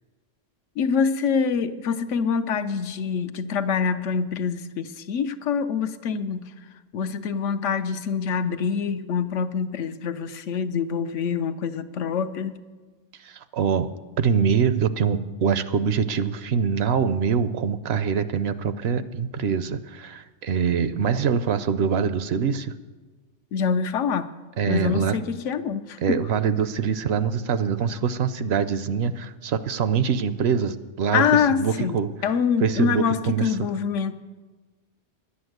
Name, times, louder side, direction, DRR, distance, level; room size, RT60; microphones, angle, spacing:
voice 1, 0.8-6.5 6.9-12.6 23.5-24.3 24.7-26.2 31.1-32.0 32.2-34.1, left 6 dB, 80° left, 10 dB, 1.0 m, -25 dB
voice 2, 13.2-22.7 24.6-25.2 26.0-32.2 32.6-33.7, right 6 dB, 65° right, 13 dB, 0.8 m, -24 dB
11.0 x 9.8 x 7.8 m, 1.3 s
omnidirectional pair, 1.2 m